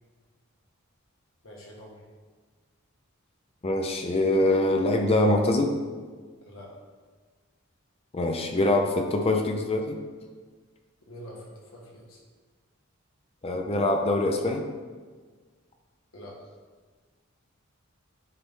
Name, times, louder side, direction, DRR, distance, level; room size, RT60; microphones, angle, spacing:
voice 1, 1.4-2.0 6.4-6.8 11.1-12.2 16.1-16.5, equal, 75° left, -3 dB, 1.8 m, -45 dB
voice 2, 3.6-5.8 8.1-10.0 13.4-14.7, left 2 dB, 30° left, 4 dB, 0.5 m, -24 dB
10.0 x 4.0 x 3.7 m, 1.5 s
head